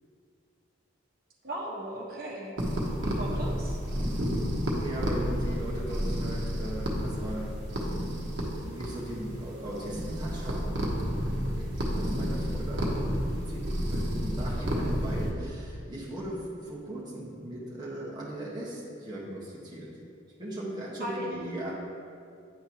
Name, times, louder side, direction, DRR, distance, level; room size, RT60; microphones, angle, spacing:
voice 1, 1.4-2.6 3.0-3.8 21.0-21.3, right 1 dB, 50° right, -4 dB, 1.2 m, -37 dB
sound 1, 2.6-15.3, equal, 70° right, 1.0 m, -31 dB
voice 2, 4.7-7.5 8.6-10.8 11.5-19.9 20.4-21.7, right 1 dB, 20° right, -7 dB, 1.3 m, -38 dB
9.4 x 4.5 x 2.9 m, 2.4 s
head